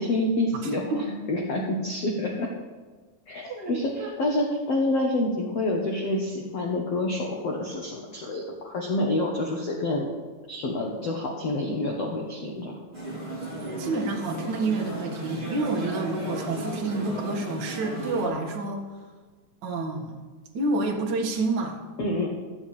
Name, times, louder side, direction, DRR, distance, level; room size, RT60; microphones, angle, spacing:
voice 1, 0.0-2.5 3.3-10.1 10.5-12.8 22.0-22.3, left 1 dB, 85° left, -1 dB, 1.3 m, -28 dB
voice 2, 0.6-1.0 3.5-4.1 13.8-18.8 19.6-20.1 20.5-21.8, right 3 dB, 80° right, 0 dB, 1.0 m, -29 dB
sound 1, 12.9-18.3, right 1 dB, 15° right, 4.4 m, -35 dB
13.5 x 7.0 x 8.7 m, 1.4 s
omnidirectional pair, 5.0 m